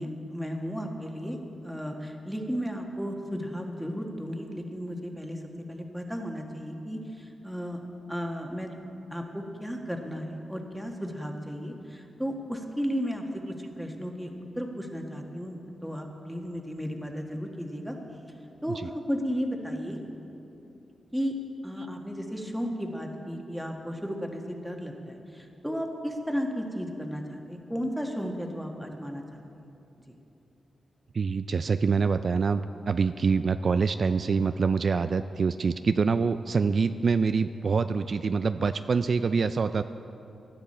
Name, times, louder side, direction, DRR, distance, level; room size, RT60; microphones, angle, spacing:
voice 1, 0.0-5.4 5.7-7.8 8.1-8.7 9.1-13.2 13.8-18.0 18.6-20.0 21.1-21.4 21.6-29.4 30.1-30.2, equal, ahead, 2 dB, 1.5 m, -34 dB
voice 2, 31.1-39.8, right 5 dB, 55° right, 10 dB, 0.3 m, -25 dB
17.0 x 11.5 x 4.3 m, 2.8 s
cardioid pair, 80°, 0 cm